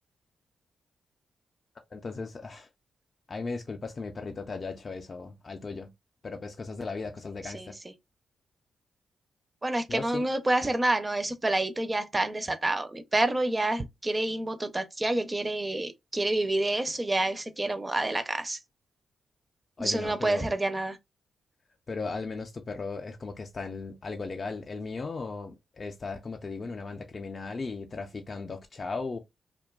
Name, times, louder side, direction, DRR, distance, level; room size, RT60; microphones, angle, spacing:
voice 1, 1.9-2.7 3.3-5.9 6.2-7.8 9.9-10.3 19.8-20.5 21.9-29.2, left 4 dB, 40° left, 0.4 m, -37 dB
voice 2, 9.6-18.6 19.8-21.0, right 2 dB, 25° right, 0.4 m, -28 dB
2.5 x 2.2 x 2.2 m
cardioid pair, 60°, 0 cm